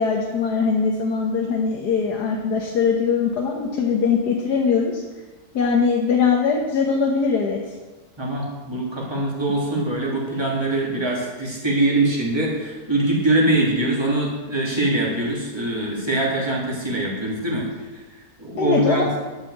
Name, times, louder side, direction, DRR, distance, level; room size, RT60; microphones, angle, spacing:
voice 1, 0.0-5.0 5.5-7.6 18.6-19.0, left 5 dB, 80° left, 0 dB, 1.8 m, -21 dB
voice 2, 8.2-18.0 18.4-19.1, right 2 dB, 15° right, -4 dB, 3.1 m, -23 dB
11.0 x 6.7 x 7.9 m, 1.2 s
omnidirectional pair, 1.7 m